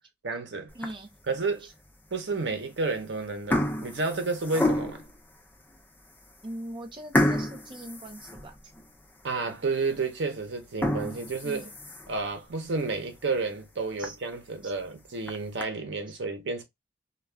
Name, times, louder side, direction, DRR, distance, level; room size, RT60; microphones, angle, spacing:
voice 1, 0.2-0.7 1.3-1.7 2.1-5.0 9.2-11.7 12.1-16.6, right 3 dB, 80° right, 0.7 m, -31 dB
sound 1, 0.7-1.2 1.8-1.9 2.8-3.0 3.3-5.2 5.8-5.9 6.2-6.3 7.1-8.9 9.3-9.4 9.9-10.0 10.6-12.2 12.7-12.8 13.2-13.3 13.6-13.7 14.0-14.1 15.0-15.6, left 1 dB, 10° left, 0.4 m, -29 dB
voice 2, 0.7-1.1 1.6-1.7 6.4-8.7 11.4-11.7 14.0-14.2 14.6-14.7 16.1-16.2, right 1 dB, 25° right, 0.6 m, -41 dB
2.3 x 2.3 x 3.2 m
head